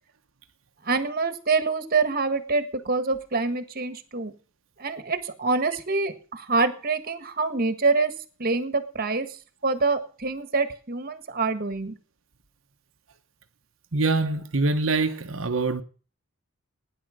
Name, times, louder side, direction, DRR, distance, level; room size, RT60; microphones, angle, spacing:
voice 1, 0.8-4.3 4.8-8.1 8.4-11.9, right 3 dB, 45° right, 1.6 m, -26 dB
voice 2, 13.9-15.8, right 3 dB, 70° right, 1.1 m, -24 dB
16.5 x 10.5 x 6.5 m
head